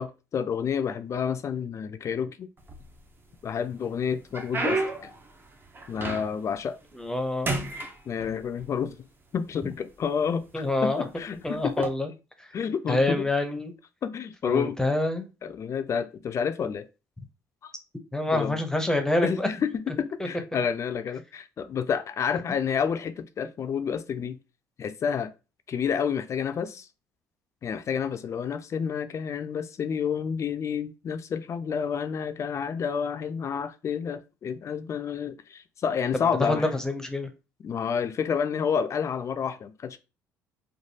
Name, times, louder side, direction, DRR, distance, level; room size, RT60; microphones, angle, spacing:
voice 1, 0.0-2.5 3.4-5.1 5.9-6.8 8.1-9.0 9.3-11.9 12.5-13.3 14.0-14.8 15.4-16.9 17.6-17.7 18.3-18.6 19.2-24.4 24.8-25.3 25.7-26.9 27.6-36.7 37.6-40.0, left 7 dB, 45° left, 0.3 m, -29 dB
sound 1, 2.6-3.3 3.8-6.6 6.9-7.2 7.4-8.7 9.5-9.6 10.3-10.5 11.7-11.9, right 2 dB, 30° right, 0.6 m, -32 dB
voice 2, 7.0-7.5 10.5-11.0 11.4-12.1 12.9-13.7 14.4-15.3 18.1-19.5 20.2-20.3 36.2-37.3, left 2 dB, 10° left, 0.6 m, -26 dB
3.2 x 2.2 x 2.7 m
supercardioid pair, 70°, 7 cm